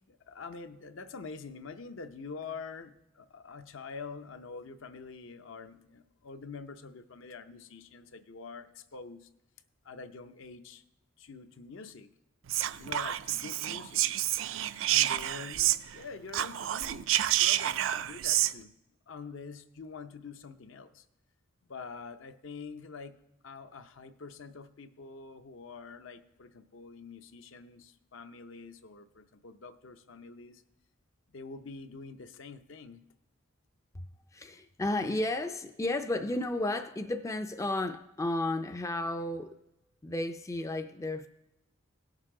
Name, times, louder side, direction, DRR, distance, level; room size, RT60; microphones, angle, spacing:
voice 1, 0.0-9.3 9.8-10.8 11.2-12.1 12.8-14.0 14.9-17.1 17.4-18.7 19.1-21.0 21.7-23.1 23.4-30.6 31.3-33.0, left 4 dB, 65° left, 9 dB, 0.6 m, -46 dB
Whispering, 12.5-16.0 16.3-18.5, right 13 dB, 65° right, 0.4 m, -29 dB
voice 2, 34.3-39.6 40.0-41.3, left 2 dB, 15° left, 7 dB, 0.3 m, -33 dB
17.5 x 6.5 x 3.7 m, 0.91 s
head